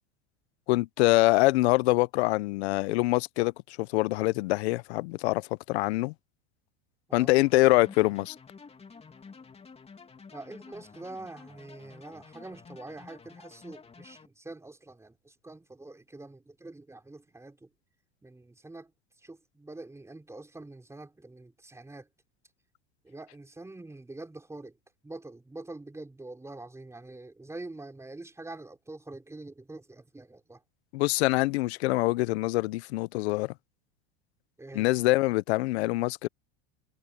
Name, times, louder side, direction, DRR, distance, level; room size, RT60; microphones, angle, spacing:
voice 1, 0.7-6.1 7.1-8.3 30.9-33.5 34.7-36.3, left 20 dB, 75° left, 0.8 m, -25 dB
sound 1, 7.4-14.3, left 5 dB, 20° left, 3.2 m, -51 dB
voice 2, 10.3-17.7 18.2-18.9 19.2-22.1 23.0-24.8 25.0-30.6 34.6-34.9, right 2 dB, 10° right, 4.3 m, -45 dB
supercardioid pair, 110°, 33 cm